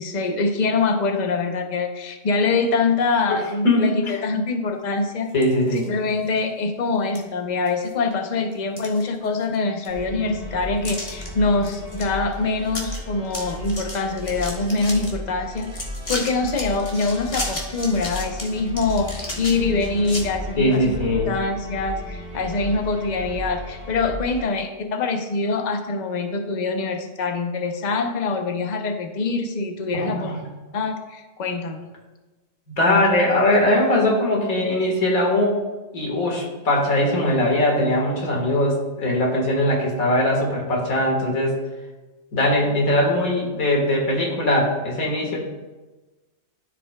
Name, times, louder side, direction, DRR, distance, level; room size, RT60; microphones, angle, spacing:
voice 1, 0.0-5.3 5.7-21.0 21.3-30.3 30.7-31.9 32.8-33.0, left 3 dB, 40° left, 4 dB, 0.7 m, -24 dB
voice 2, 3.6-4.1 5.3-5.9 20.6-21.3 29.9-30.4 32.7-35.6 35.9-41.6 42.3-45.4, left 1 dB, 90° left, -1 dB, 2.1 m, -20 dB
sound 1, 5.3-5.9 6.4-6.5 7.1-7.2 7.7-8.1 8.5-9.5 9.8-9.9 10.8-11.3 11.6-12.0 12.3-12.4 12.7-13.0 13.2-15.1 15.6-20.2, left 1 dB, 25° left, 1.3 m, -33 dB
sound 2, 9.9-24.4, equal, 45° right, 1.3 m, -35 dB
13.5 x 5.1 x 2.3 m, 1.2 s
omnidirectional pair, 1.4 m